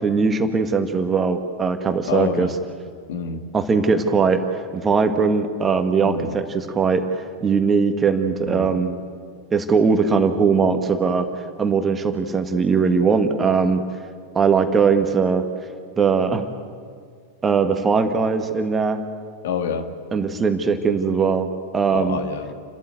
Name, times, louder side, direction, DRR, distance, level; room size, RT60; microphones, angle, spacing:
voice 1, 0.0-2.5 3.5-4.4 4.7-7.0 7.4-9.0 9.5-11.3 11.6-13.8 14.3-15.4 16.0-16.4 17.4-19.0 20.1-21.5 21.7-22.2, right 5 dB, 20° right, 7 dB, 1.5 m, -20 dB
voice 2, 2.1-2.5 3.1-3.5 6.0-6.4 8.4-8.8 19.4-19.9 21.9-22.5, left 6 dB, 55° left, 7 dB, 1.7 m, -27 dB
30.0 x 13.0 x 8.2 m, 2.1 s
figure-of-eight pair, 90°, 0 cm